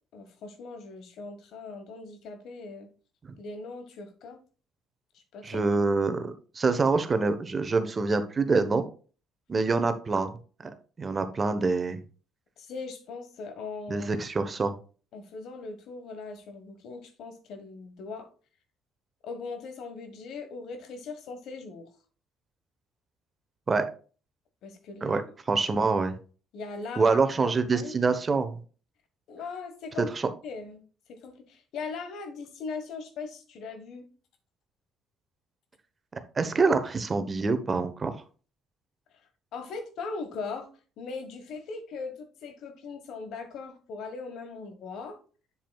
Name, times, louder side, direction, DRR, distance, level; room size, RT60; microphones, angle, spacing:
voice 1, 0.1-2.9 3.4-4.4 5.3-5.6 12.6-14.1 15.1-18.3 19.2-21.9 24.6-25.2 26.5-28.1 29.3-30.1 30.4-30.8 31.1-34.0 39.5-40.7 41.0-45.2, left 4 dB, 65° left, 8 dB, 1.4 m, -39 dB
voice 2, 5.4-8.9 9.5-10.3 10.6-10.7 11.0-12.0 13.9-14.7 23.7-23.9 25.0-25.2 25.5-26.1 27.0-28.6 30.1-30.3 36.3-38.2, right 4 dB, 35° right, 9 dB, 1.0 m, -26 dB
7.4 x 7.2 x 2.3 m, 0.38 s
hypercardioid pair, 65°, 0 cm